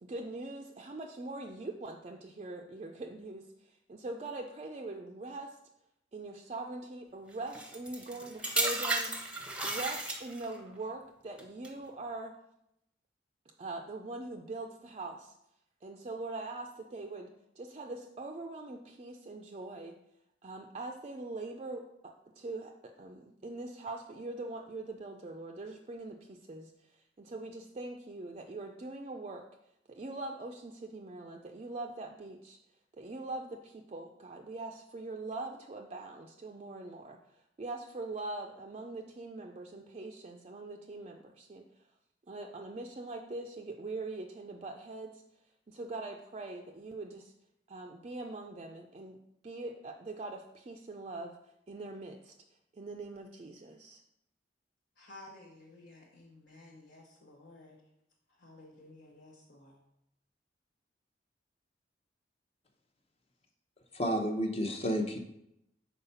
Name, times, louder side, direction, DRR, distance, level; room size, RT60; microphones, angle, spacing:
voice 1, 0.0-5.6 6.1-9.1 9.6-12.4 13.6-15.3 15.8-20.0 20.4-29.5 29.9-32.6 32.9-41.8 42.3-45.2 45.7-47.3 47.7-51.4 51.7-52.3 52.7-54.0, right 2 dB, 35° right, 2 dB, 0.4 m, -42 dB
sound 1, 7.5-10.6 11.4-11.7, right 2 dB, 5° right, 0.7 m, -34 dB
voice 2, 55.0-57.8 58.4-59.8, left 2 dB, 60° left, -3 dB, 1.0 m, -54 dB
voice 3, 63.9-65.2, equal, 35° left, 5 dB, 0.8 m, -31 dB
5.6 x 4.3 x 5.5 m, 0.80 s
head